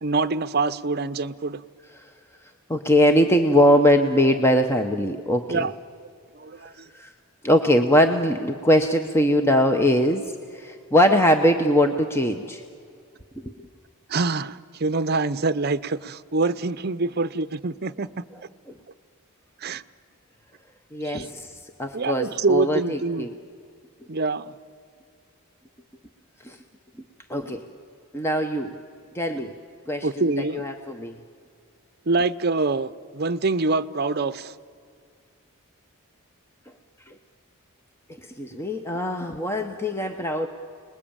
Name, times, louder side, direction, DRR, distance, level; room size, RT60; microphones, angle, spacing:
voice 1, 0.0-1.6 5.5-5.7 6.3-6.9 14.1-18.2 19.6-19.8 21.0-21.3 21.9-23.3 24.1-24.5 30.0-30.6 32.1-34.5, right 3 dB, 45° right, 0.7 m, -25 dB
voice 2, 2.7-5.7 6.9-7.1 7.4-12.6 13.4-13.5 20.9-23.3 26.4-26.6 27.3-27.6 28.1-28.7 29.1-29.5 29.9-30.2 30.5-31.2 37.1-37.2 38.4-40.5, equal, 10° left, 0.8 m, -21 dB
29.5 x 20.5 x 8.8 m
head